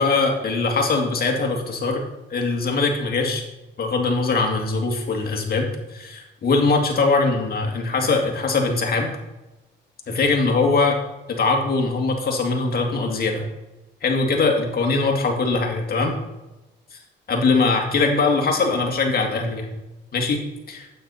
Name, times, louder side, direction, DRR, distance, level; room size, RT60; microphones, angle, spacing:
voice 1, 0.0-2.0 2.3-3.4 3.8-9.1 10.1-11.0 11.3-13.4 14.0-16.2 16.9-17.0 17.3-19.7 20.1-20.4 20.7-20.9, left 3 dB, 50° left, 2 dB, 2.2 m, -21 dB
9.3 x 8.4 x 4.2 m, 1.0 s
cardioid pair, 90°, 20 cm